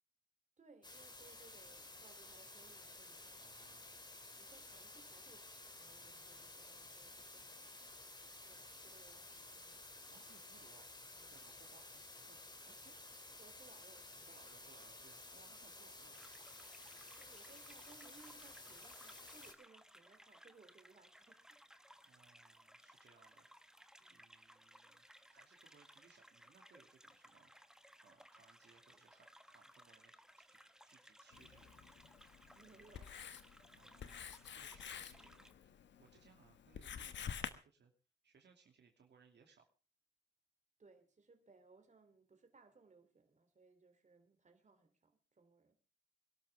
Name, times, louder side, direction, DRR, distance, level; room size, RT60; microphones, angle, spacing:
voice 1, 0.6-3.6 4.4-7.9 8.4-9.8 11.1-11.3 13.4-14.3 17.2-21.6 24.0-24.3 32.5-33.5 40.8-45.8, right 4 dB, 40° right, 3.2 m, -65 dB
sound 1, 0.8-19.5, left 2 dB, 25° left, 2.9 m, -54 dB
voice 2, 3.4-4.0 10.1-10.9 11.3-13.0 14.3-16.2 22.0-23.8 24.1-27.5 28.0-30.6 30.8-32.1 33.7-35.7 36.0-37.9 38.2-39.7, right 5 dB, 70° right, 2.7 m, -68 dB
sound 2, 16.1-35.5, equal, 5° right, 1.3 m, -63 dB
Writing, 31.3-37.5, left 8 dB, 85° left, 1.3 m, -50 dB
23.5 x 12.5 x 3.5 m
cardioid pair, 80°, 18 cm